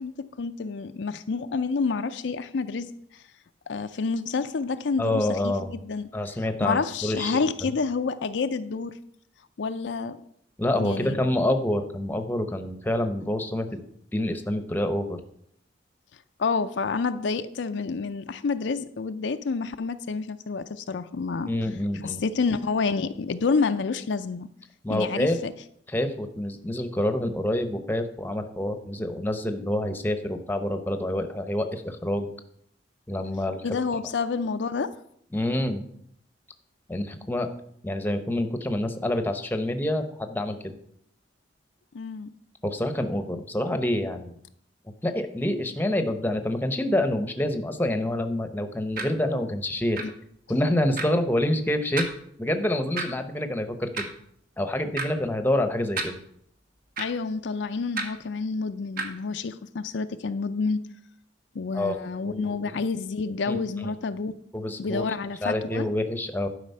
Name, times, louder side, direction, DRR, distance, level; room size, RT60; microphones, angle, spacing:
voice 1, 0.0-2.9 3.7-6.1 6.6-9.0 9.6-10.2 10.8-11.3 16.4-21.5 22.0-24.5 24.9-25.5 33.6-34.9 41.9-42.3 50.0-50.1 57.0-60.8 61.5-64.3 64.8-65.9, left 4 dB, 75° left, 10 dB, 0.5 m, -28 dB
voice 2, 5.0-5.8 6.1-7.7 10.6-13.8 14.1-15.2 21.5-22.2 24.8-25.4 25.9-32.3 33.1-33.6 35.3-35.8 36.9-37.5 37.8-40.7 42.6-44.4 45.0-50.0 50.5-52.1 52.4-54.1 54.6-56.2 61.7-62.0 62.2-62.6 63.5-63.9 64.5-65.1 65.4-66.5, left 1 dB, 10° left, 8 dB, 0.8 m, -27 dB
sound 1, 49.0-49.1 50.0-50.1 51.0-51.1 52.0-52.1 53.0-53.1 54.0-54.1 55.0-55.1 56.0-56.1 57.0-57.1 58.0-58.1 59.0-59.1, right 3 dB, 55° right, 1.2 m, -29 dB
11.5 x 4.9 x 5.5 m, 0.68 s
head